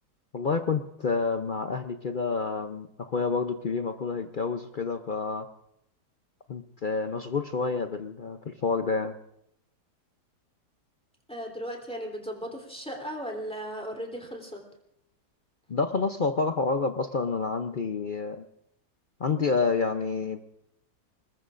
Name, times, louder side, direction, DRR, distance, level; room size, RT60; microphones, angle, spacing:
voice 1, 0.3-5.5 6.5-9.1 15.7-18.4 19.2-20.4, left 4 dB, 65° left, 7 dB, 0.5 m, -28 dB
voice 2, 11.3-14.6, equal, 5° left, 1 dB, 3.2 m, -36 dB
26.5 x 20.5 x 2.5 m, 0.77 s
omnidirectional pair, 1.8 m